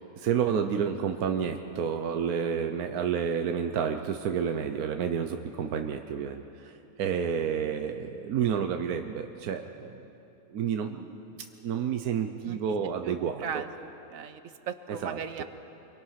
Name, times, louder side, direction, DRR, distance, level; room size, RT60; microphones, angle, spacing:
voice 1, 0.2-10.0 10.5-11.2 11.6-13.4 15.0-15.2, right 7 dB, 85° right, 6 dB, 1.3 m, -30 dB
voice 2, 12.4-15.4, right 7 dB, 70° right, 10 dB, 1.3 m, -38 dB
27.0 x 24.0 x 5.8 m, 2.9 s
omnidirectional pair, 1.5 m